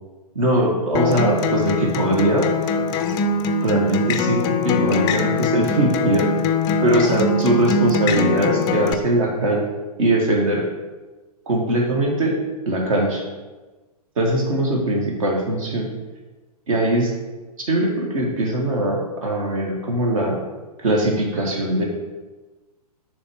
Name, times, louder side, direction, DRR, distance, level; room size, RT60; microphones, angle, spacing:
voice 1, 0.3-2.5 3.6-6.3 6.8-9.6 10.0-10.6 11.5-12.3 12.6-13.2 14.2-15.9 16.7-17.1 17.7-20.4 20.8-21.8, right 1 dB, 55° right, 0 dB, 1.5 m, -21 dB
Acoustic guitar, 0.9-8.9, left 4 dB, 20° left, 0.4 m, -22 dB
6.9 x 3.3 x 6.1 m, 1.2 s
figure-of-eight pair, 110°, 20 cm